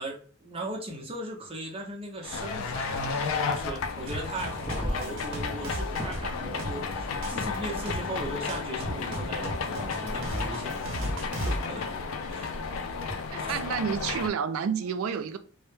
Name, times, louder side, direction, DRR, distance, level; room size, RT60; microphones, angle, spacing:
voice 1, 0.0-11.1 11.4-11.9 12.3-12.7 13.4-13.6, right 1 dB, 25° right, 0.5 m, -38 dB
sound 1, 2.2-14.3, left 4 dB, 80° left, 0.3 m, -33 dB
sound 2, 4.1-11.7, right 1 dB, 65° right, 0.7 m, -36 dB
sound 3, 4.6-6.3 7.7-7.8 9.4-9.5 11.5-11.6 13.0-13.1, equal, 30° left, 0.7 m, -36 dB
voice 2, 13.3-15.4, right 7 dB, 85° right, 0.3 m, -30 dB
2.1 x 2.0 x 3.0 m
head